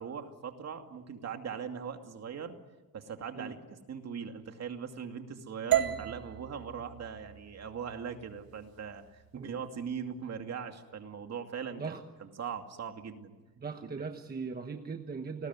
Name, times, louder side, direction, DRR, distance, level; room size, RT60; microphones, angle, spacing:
voice 1, 0.0-2.5 2.9-3.6 3.9-11.9 12.2-13.3 13.8-13.9, right 7 dB, 45° right, 5 dB, 2.5 m, -40 dB
sound 1, 5.7-9.8, right 12 dB, 75° right, 1.9 m, -35 dB
voice 2, 13.6-15.5, right 5 dB, 25° right, 5 dB, 1.2 m, -39 dB
29.5 x 20.0 x 9.6 m, 1.2 s
cardioid pair, 155°, 35 cm